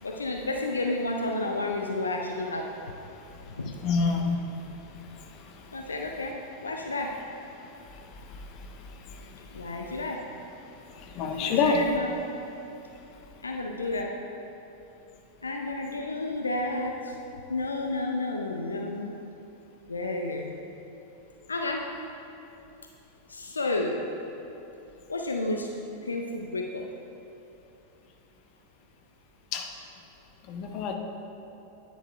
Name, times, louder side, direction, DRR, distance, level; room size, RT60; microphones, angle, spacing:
voice 1, 0.0-2.8 3.6-3.7 5.7-7.2 9.5-10.2 11.4-12.2 13.4-14.2 15.4-17.2 17.5-19.1 19.9-20.5 21.5-21.9 23.3-24.1 25.1-25.7 26.0-26.9, left 2 dB, 75° left, 2 dB, 0.5 m, -31 dB
voice 2, 3.8-4.4 11.2-11.8 29.5-29.6 30.5-30.9, left 4 dB, 40° left, 3 dB, 0.8 m, -25 dB
10.5 x 9.7 x 2.5 m, 2.9 s
figure-of-eight pair, 90°, 0 cm